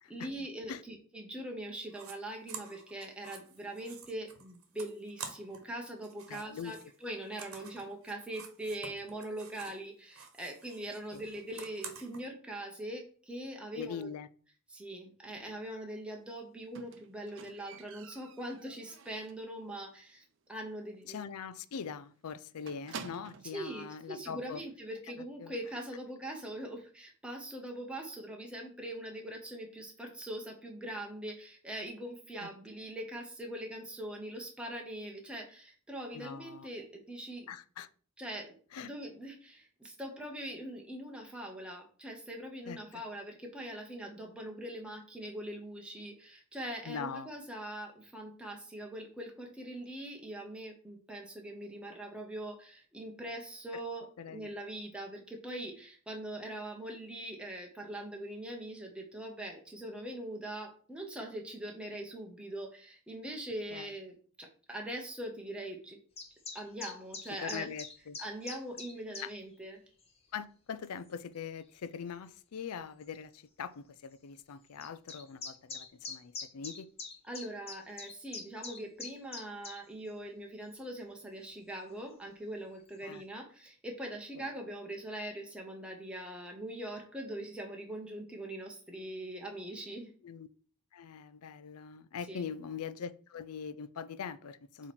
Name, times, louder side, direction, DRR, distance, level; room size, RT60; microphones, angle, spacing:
voice 1, 0.1-14.1 14.7-20.2 20.5-21.3 23.5-37.5 38.2-66.0 66.5-67.7 68.2-69.8 77.3-90.1 92.3-92.4, right 1 dB, 5° right, 1 dB, 0.9 m, -42 dB
sound 1, 1.9-2.1 2.5-5.7 6.0-9.8 10.1-12.2, right 6 dB, 75° right, 1.1 m, -49 dB
voice 2, 6.3-6.7 11.1-11.2 13.8-14.3 15.3-15.4 21.1-24.6 25.4-25.5 32.4-32.5 36.1-36.7 37.5-37.9 38.7-38.9 42.7-43.0 46.8-47.3 53.7-53.8 54.2-54.5 63.7-63.9 67.4-68.2 69.2-69.3 70.3-76.9 83.0-83.2 84.4-84.5 90.2-90.5 90.9-94.9, left 6 dB, 90° left, 15 dB, 0.4 m, -42 dB
Squeak, 16.7-19.5 19.8-20.2 20.5-20.6 21.0-21.1 21.4-21.5 21.7-23.6 24.4-24.5, right 5 dB, 55° right, 0.5 m, -49 dB
sound 2, 66.2-69.3 70.0-70.2 71.1-71.2 72.3-72.4 72.7-72.8 73.0-73.1 74.8-79.8, left 4 dB, 25° left, 1.2 m, -43 dB
7.7 x 3.1 x 4.3 m, 0.43 s
head